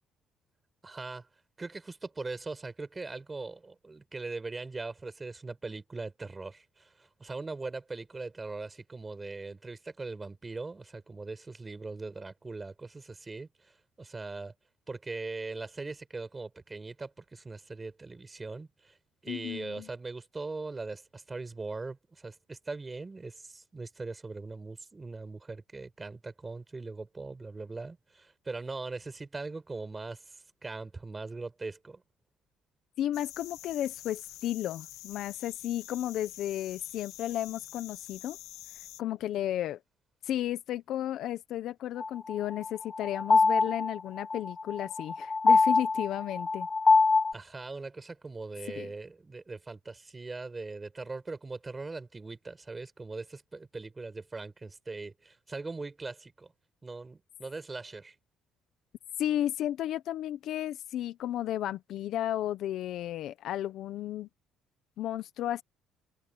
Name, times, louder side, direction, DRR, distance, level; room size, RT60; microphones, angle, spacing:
voice 1, 0.8-1.3 1.6-14.5 14.9-19.0 19.2-32.0 47.3-56.5 56.8-58.1, right 3 dB, 15° right, 4.9 m, -40 dB
voice 2, 19.3-19.9 33.0-38.4 39.0-39.8 40.2-46.7 48.7-48.9 59.2-64.3 65.0-65.6, left 12 dB, 60° left, 0.9 m, -33 dB
sound 1, 33.1-39.0, left 14 dB, 85° left, 1.1 m, -47 dB
sound 2, 42.0-47.3, left 4 dB, 20° left, 0.4 m, -24 dB
cardioid pair, 160°, 0 cm